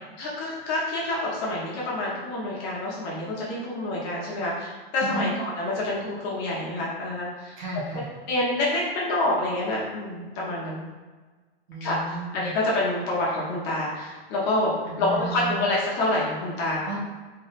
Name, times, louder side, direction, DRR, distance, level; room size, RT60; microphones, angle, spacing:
voice 1, 0.2-7.5 8.3-10.8 11.8-14.7 15.0-16.9, left 2 dB, 25° left, -5 dB, 0.7 m, -27 dB
voice 2, 5.0-5.3 7.6-8.1 11.7-12.5 14.8-15.6 16.9-17.0, right 1 dB, 50° right, -2 dB, 1.1 m, -33 dB
4.1 x 3.2 x 4.0 m, 1.3 s
supercardioid pair, 180°, 31 cm